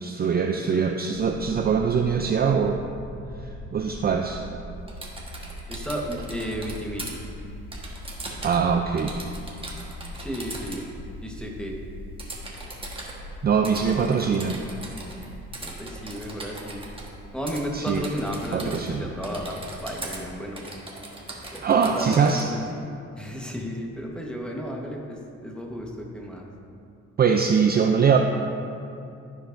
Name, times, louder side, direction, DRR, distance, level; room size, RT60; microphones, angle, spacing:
voice 1, 0.0-2.8 3.4-4.4 8.4-9.2 13.4-14.6 17.7-18.1 18.5-19.1 21.6-22.5 27.2-28.2, right 6 dB, 35° right, 4 dB, 0.4 m, -22 dB
sound 1, 1.1-20.4, equal, 75° left, 0.9 m, -42 dB
Typing, 4.9-7.1 7.7-8.7 9.0-10.8 12.2-13.1 13.6-15.3 15.5-17.1 17.5-17.6 17.9-18.9 19.2-20.2 20.6-22.4, right 2 dB, 20° right, 1.3 m, -39 dB
voice 2, 5.7-7.0 10.2-10.9 11.2-11.7 15.6-16.8 17.3-20.6 21.5-22.6 23.2-26.5, equal, 5° left, -1 dB, 1.2 m, -33 dB
13.0 x 4.7 x 2.6 m, 2.5 s
cardioid pair, 90°, 30 cm